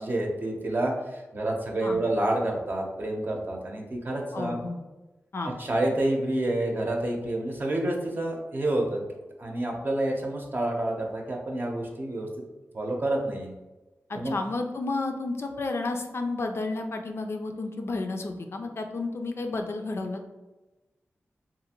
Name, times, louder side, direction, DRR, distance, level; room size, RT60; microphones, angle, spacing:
voice 1, 0.0-4.6 5.6-9.0 9.4-12.3 12.7-13.5 14.1-14.4, right 1 dB, 40° right, 0 dB, 0.7 m, -28 dB
voice 2, 4.3-4.8 5.3-5.5 14.1-20.3, left 3 dB, 55° left, 4 dB, 0.4 m, -31 dB
2.7 x 2.5 x 2.8 m, 1.1 s
cardioid pair, 45°, 5 cm